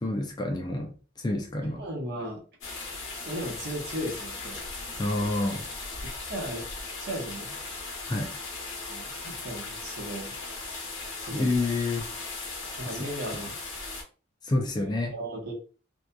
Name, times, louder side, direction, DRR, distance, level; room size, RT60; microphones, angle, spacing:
voice 1, 0.0-1.8 5.0-5.7 8.1-8.3 11.3-12.0 12.9-13.1 13.3-13.5 14.4-15.1, left 2 dB, 20° left, 0.4 m, -28 dB
voice 2, 1.6-2.4 3.2-4.6 6.2-6.7 7.0-7.5 8.9-10.3 11.2-11.6 12.8-13.6 14.7-15.5, right 1 dB, 55° right, 1.0 m, -36 dB
sound 1, 2.6-14.0, left 3 dB, 75° left, 0.8 m, -38 dB
2.7 x 2.3 x 2.2 m
head